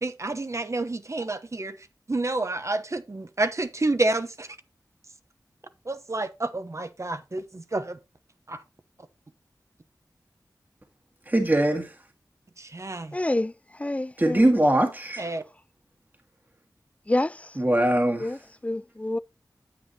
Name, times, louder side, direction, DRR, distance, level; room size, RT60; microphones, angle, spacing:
voice 1, 0.0-4.6 5.8-8.0 8.5-8.6 12.6-13.2 15.2-15.4, right 2 dB, 45° right, 1.0 m, -29 dB
voice 2, 11.3-11.9 14.2-15.2 17.6-18.3, right 1 dB, 25° right, 1.7 m, -21 dB
voice 3, 13.1-13.5 13.8-14.4 17.1-17.4 18.2-18.4 18.6-19.2, left 1 dB, 20° left, 0.4 m, -27 dB
9.5 x 7.8 x 2.9 m
cardioid pair, 45°, 7 cm